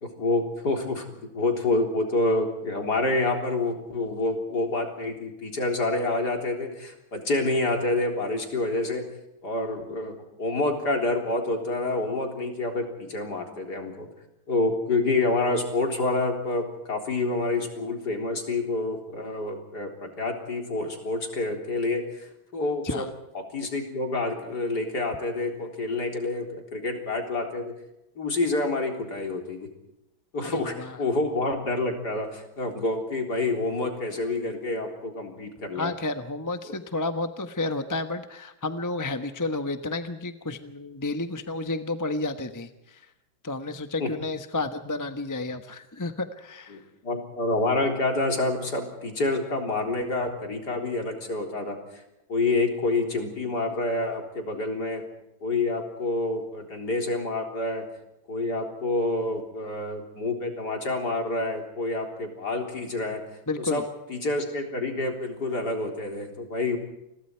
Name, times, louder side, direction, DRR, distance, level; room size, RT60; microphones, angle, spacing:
voice 1, 0.0-9.0 9.4-14.1 14.5-23.0 23.3-27.7 28.2-29.7 30.3-35.9 44.0-44.1 46.7-51.8 52.3-55.0 55.4-57.8 58.3-63.2 63.6-63.8 64.1-66.8, left 2 dB, 55° left, 3 dB, 4.3 m, -28 dB
voice 2, 30.4-31.0 35.7-43.0 43.4-46.8 63.5-63.8, left 2 dB, 10° left, 8 dB, 0.9 m, -31 dB
29.0 x 22.0 x 4.6 m, 0.89 s
omnidirectional pair, 2.1 m